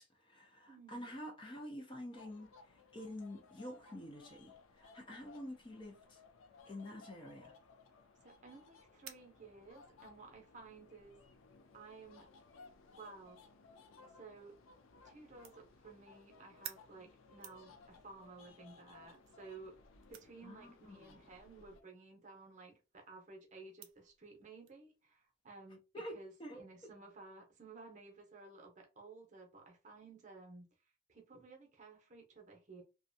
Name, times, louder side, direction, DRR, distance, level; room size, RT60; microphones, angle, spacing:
voice 1, 0.0-6.2 6.7-7.5 20.4-21.2 25.9-26.7, left 1 dB, 25° left, 0.4 m, -48 dB
voice 2, 0.7-1.1 8.2-11.2 11.7-12.3 12.9-13.4 14.0-14.5 15.0-19.8 20.1-30.7 31.1-32.8, right 3 dB, 35° right, 0.7 m, -55 dB
sound 1, 2.1-21.8, left 4 dB, 80° left, 0.4 m, -61 dB
sound 2, 7.0-24.7, right 10 dB, 75° right, 0.4 m, -60 dB
2.6 x 2.2 x 2.6 m
head